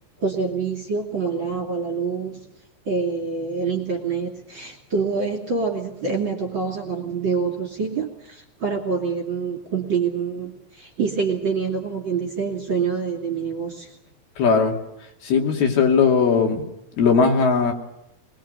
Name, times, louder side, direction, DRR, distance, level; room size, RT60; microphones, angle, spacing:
voice 1, 0.2-2.5 2.9-14.0, right 5 dB, 35° right, 2 dB, 2.9 m, -26 dB
voice 2, 14.4-14.8 15.2-16.6 17.0-17.7, left 5 dB, 70° left, 2 dB, 4.5 m, -18 dB
24.0 x 21.0 x 7.9 m, 0.82 s
omnidirectional pair, 4.7 m